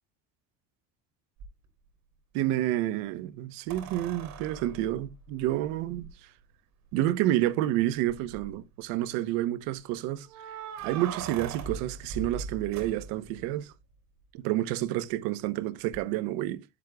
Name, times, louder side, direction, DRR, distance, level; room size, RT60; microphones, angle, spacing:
sound 1, 1.4-1.5 3.7-6.1 7.0-7.1 7.4-7.5 8.1-8.6 10.3-13.4 15.9-16.0, right 5 dB, 55° right, 3.4 m, -40 dB
voice 1, 2.3-6.1 6.9-10.3 10.8-13.7 14.3-16.6, right 14 dB, 80° right, 1.0 m, -29 dB
12.0 x 7.3 x 2.3 m
cardioid pair, 145°, 34 cm